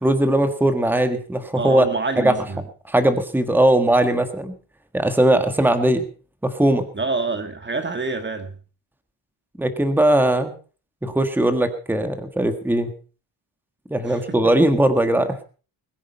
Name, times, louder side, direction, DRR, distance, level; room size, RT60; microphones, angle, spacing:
voice 1, 0.0-1.9 2.2-2.4 2.9-4.5 4.9-6.1 6.4-6.9 9.6-10.5 11.0-12.9 13.9-15.4, right 1 dB, 5° right, 8 dB, 1.6 m, -19 dB
voice 2, 1.6-2.6 6.9-8.5 14.0-14.5, right 3 dB, 25° right, 8 dB, 1.5 m, -27 dB
21.5 x 10.0 x 5.4 m, 0.38 s
cardioid pair, 150°, 46 cm